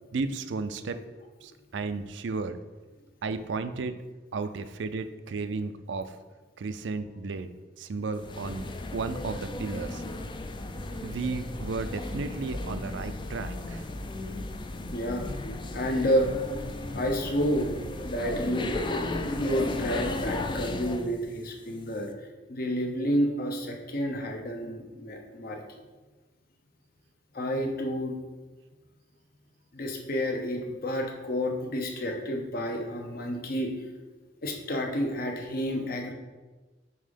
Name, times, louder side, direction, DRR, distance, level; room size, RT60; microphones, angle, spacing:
voice 1, 0.1-1.0 1.4-2.6 3.2-4.0 4.3-6.1 6.6-7.5 7.8-8.6 8.9-10.0 11.0-13.8, right 4 dB, 75° right, 11 dB, 0.4 m, -33 dB
sound 1, 8.2-21.1, left 2 dB, 25° left, 0.4 m, -35 dB
voice 2, 14.9-15.3 15.7-16.3 16.9-17.7 18.0-18.7 19.4-25.8 27.3-28.2 29.7-33.7 34.4-36.1, equal, 55° left, 2 dB, 0.8 m, -30 dB
5.5 x 3.7 x 5.1 m, 1.2 s
head